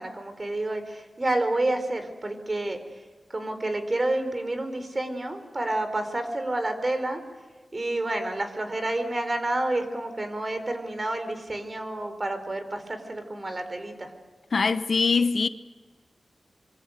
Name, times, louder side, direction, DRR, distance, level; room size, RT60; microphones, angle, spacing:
voice 1, 0.0-2.8 3.3-7.2 7.7-14.1, right 2 dB, 30° right, 4.3 m, -29 dB
voice 2, 14.5-15.5, left 4 dB, 60° left, 1.0 m, -22 dB
26.0 x 24.5 x 6.7 m
wide cardioid pair, 95°, 0 cm